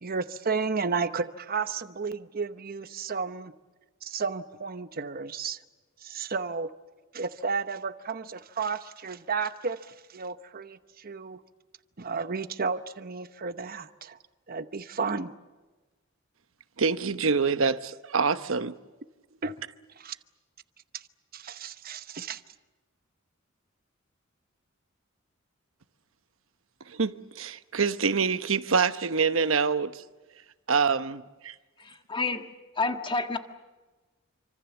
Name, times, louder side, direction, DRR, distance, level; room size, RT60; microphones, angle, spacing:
voice 1, 0.0-3.5 4.0-5.6 6.0-6.7 7.1-11.4 12.0-14.2 14.5-15.3 19.4-19.5 20.0-20.1 20.9-21.0 21.3-22.4, right 5 dB, 45° right, 1.0 m, -32 dB
voice 2, 16.8-18.8 26.9-30.0 30.7-31.6, right 5 dB, 75° right, 1.0 m, -26 dB
voice 3, 31.8-32.5 32.7-33.4, left 3 dB, 25° left, 1.6 m, -29 dB
27.5 x 25.5 x 7.2 m
head